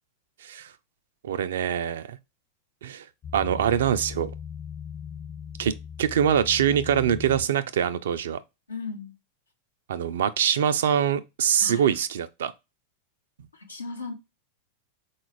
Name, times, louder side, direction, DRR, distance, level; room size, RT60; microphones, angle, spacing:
voice 1, 1.2-2.2 2.8-3.0 3.3-4.3 5.6-5.7 6.0-8.4 9.9-12.5, right 9 dB, 70° right, 0.4 m, -24 dB
sound 1, 3.2-7.5, left 7 dB, 30° left, 0.4 m, -38 dB
voice 2, 8.7-9.1 11.6-11.8 13.7-14.1, left 4 dB, 90° left, 0.8 m, -35 dB
3.9 x 2.4 x 3.1 m
hypercardioid pair, 95°, 0 cm